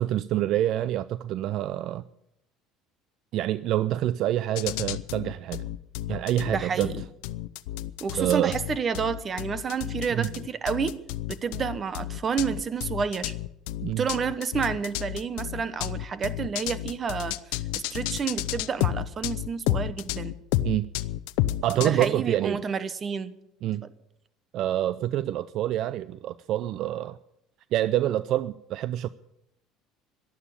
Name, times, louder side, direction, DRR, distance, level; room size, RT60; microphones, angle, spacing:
voice 1, 0.0-2.0 3.3-5.6 6.1-6.9 8.2-8.5 10.1-10.3 13.8-14.0 20.6-20.9 21.6-22.6 23.6-23.8 24.5-27.2 27.7-29.1, right 13 dB, 55° right, 0.4 m, -26 dB
sound 1, 4.6-22.1, left 15 dB, 85° left, 0.6 m, -31 dB
voice 2, 6.5-7.0 8.0-11.0 11.3-13.3 14.0-17.4 17.7-20.4 21.8-23.4, right 6 dB, 30° right, 1.0 m, -30 dB
12.5 x 11.0 x 8.8 m
cardioid pair, 125°, 0 cm